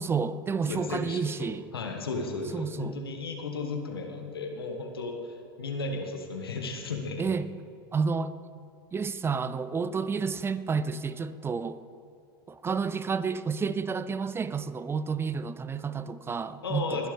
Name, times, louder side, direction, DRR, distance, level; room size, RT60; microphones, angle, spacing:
voice 1, 0.0-1.7 2.5-3.0 7.2-7.5 7.9-8.3 8.9-11.8 12.5-17.1, right 5 dB, 20° right, 14 dB, 0.5 m, -30 dB
voice 2, 0.7-5.1 5.6-7.2 16.6-17.1, left 3 dB, 85° left, 3 dB, 1.6 m, -34 dB
20.0 x 11.5 x 3.5 m, 2.7 s
hypercardioid pair, 85°, 12 cm